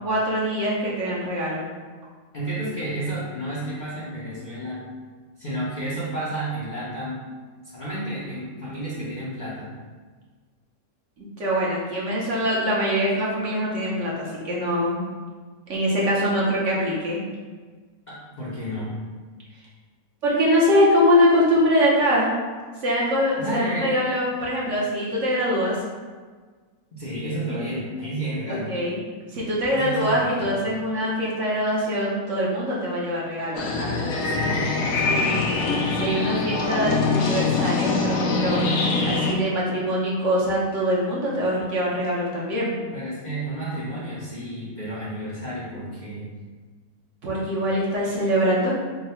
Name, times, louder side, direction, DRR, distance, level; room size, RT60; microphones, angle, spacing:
voice 1, 0.0-1.7 11.2-15.0 15.7-17.2 20.2-22.3 22.8-25.8 28.7-29.0 29.3-33.9 35.1-35.5 36.0-38.6 39.0-42.7 47.2-48.8, equal, 60° right, -5 dB, 1.1 m, -23 dB
voice 2, 2.3-4.9 5.4-7.2 7.6-9.7 18.1-18.9 23.4-24.0 26.9-28.8 29.7-30.6 34.2-35.5 42.9-46.3, right 1 dB, 45° left, -9 dB, 0.6 m, -31 dB
sound 1, 33.5-39.3, left 3 dB, 75° left, 1.0 m, -23 dB
3.7 x 2.2 x 4.2 m, 1.5 s
omnidirectional pair, 1.5 m